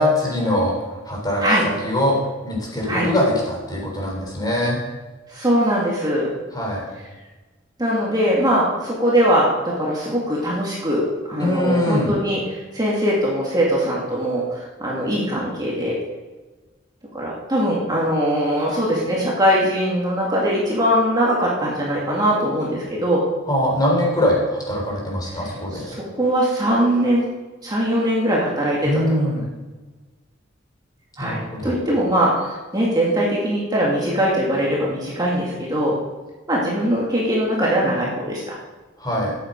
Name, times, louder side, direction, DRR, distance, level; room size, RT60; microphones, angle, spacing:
voice 1, 0.0-1.4 1.8-2.2 2.4-4.8 6.5-6.9 11.4-12.1 23.5-25.9 28.8-29.4 31.2-31.7 39.0-39.3, left 1 dB, 20° left, -2 dB, 3.8 m, -22 dB
voice 2, 5.3-6.3 7.8-12.4 12.7-16.0 17.1-23.2 25.3-27.3 27.6-29.3 31.2-36.0 36.5-38.5, equal, 20° right, -5 dB, 2.1 m, -21 dB
12.5 x 8.6 x 5.2 m, 1.3 s
head